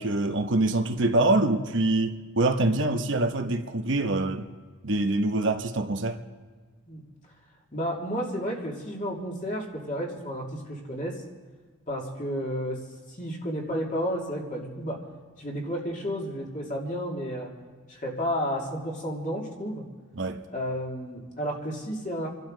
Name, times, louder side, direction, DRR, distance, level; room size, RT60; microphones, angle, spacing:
voice 1, 0.0-4.5 4.8-6.2 20.1-20.4, right 2 dB, 60° right, 1.0 m, -25 dB
voice 2, 7.7-11.2 11.9-12.8 13.2-15.0 15.4-17.5 17.9-19.8 20.5-22.3, equal, 40° left, 2.7 m, -32 dB
28.0 x 12.0 x 3.9 m
head